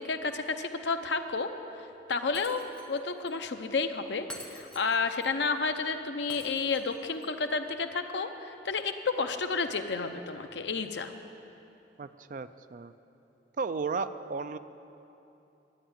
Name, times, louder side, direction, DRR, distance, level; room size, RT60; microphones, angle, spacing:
voice 1, 0.0-2.6 2.9-11.1, left 4 dB, 70° left, 7 dB, 0.7 m, -31 dB
Shatter, 2.3-3.0 3.3-3.4 4.3-5.3 6.3-7.3, equal, 5° left, 0.9 m, -47 dB
voice 2, 12.0-12.9 13.6-14.6, right 4 dB, 45° right, 12 dB, 0.3 m, -34 dB
11.5 x 8.9 x 8.6 m, 2.9 s
head